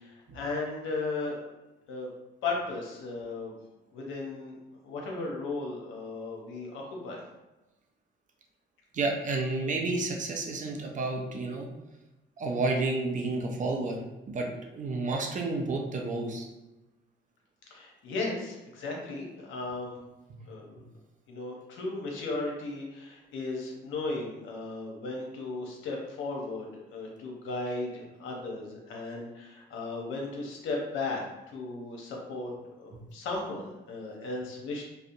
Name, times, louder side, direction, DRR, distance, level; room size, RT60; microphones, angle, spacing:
voice 1, 0.0-1.4 1.9-2.1 2.4-3.6 3.9-4.5 4.8-7.2 17.7-20.0 20.5-20.8 21.3-31.2 31.5-32.5 32.8-34.8, left 3 dB, 85° left, -1 dB, 0.7 m, -36 dB
voice 2, 8.9-11.7 12.4-14.0 14.3-16.5, right 3 dB, 40° right, 1 dB, 0.5 m, -30 dB
2.7 x 2.0 x 2.5 m, 1.0 s
cardioid pair, 90°, 20 cm